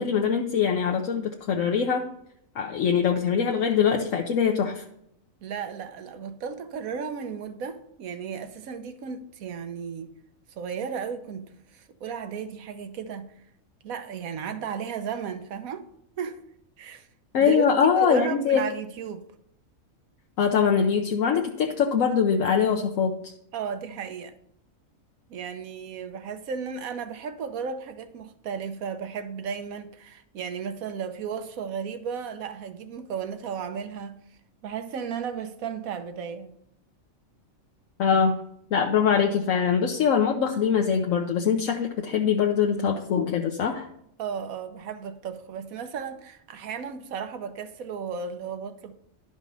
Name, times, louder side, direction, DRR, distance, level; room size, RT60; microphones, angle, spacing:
voice 1, 0.0-2.0 2.5-4.8 17.3-18.6 20.4-23.3 38.0-38.4 38.7-43.9, left 7 dB, 70° left, 1.2 m, -23 dB
voice 2, 5.4-10.1 10.6-11.5 11.7-13.3 13.8-15.8 16.2-16.4 16.8-17.1 17.4-17.6 17.9-19.2 23.5-24.3 25.3-34.2 34.6-36.5 44.2-48.9, right 6 dB, 80° right, 1.3 m, -34 dB
11.5 x 5.1 x 5.4 m
omnidirectional pair, 1.5 m